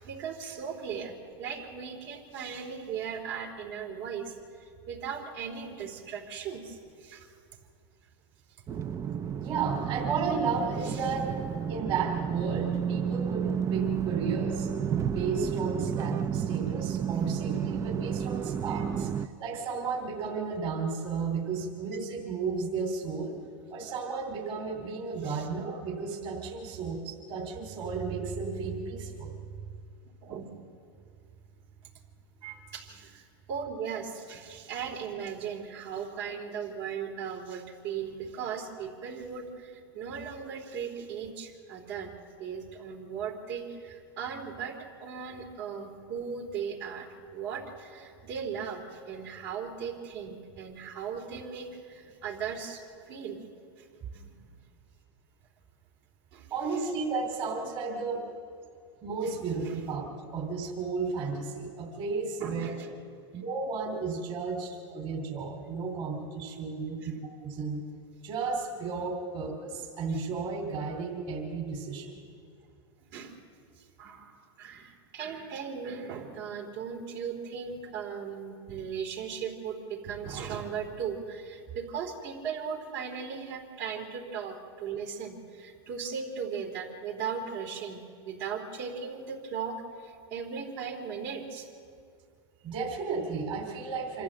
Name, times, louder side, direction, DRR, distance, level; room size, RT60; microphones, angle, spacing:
voice 1, 0.0-4.3 4.6-7.3 10.8-11.0 25.2-25.5 30.2-30.5 32.7-42.1 42.4-53.4 53.8-53.9 54.1-54.5 56.3-56.5 59.7-59.8 62.4-62.9 67.0-67.1 70.1-70.2 73.1-73.4 73.8-91.7, right 6 dB, 60° right, 1 dB, 3.8 m, -38 dB
sound 1, 8.7-19.3, right 8 dB, 20° right, 0.4 m, -31 dB
voice 2, 9.4-11.3 11.7-14.7 15.1-19.1 19.4-23.4 23.7-29.3 32.4-32.6 56.5-58.3 59.0-62.7 63.3-67.1 67.4-67.9 68.2-72.2 77.8-78.0 92.6-94.2, right 4 dB, 35° right, 0 dB, 2.9 m, -33 dB
26.0 x 13.5 x 7.6 m, 2.2 s
supercardioid pair, 130°, 14 cm